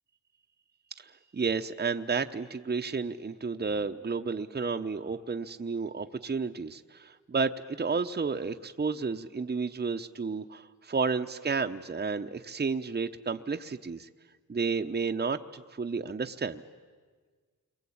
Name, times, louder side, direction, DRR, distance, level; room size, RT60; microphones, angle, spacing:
voice 1, 1.0-14.1 14.5-16.6, right 4 dB, 30° right, 5 dB, 0.9 m, -32 dB
29.0 x 23.0 x 8.7 m, 1.5 s
cardioid pair, 75°, 33 cm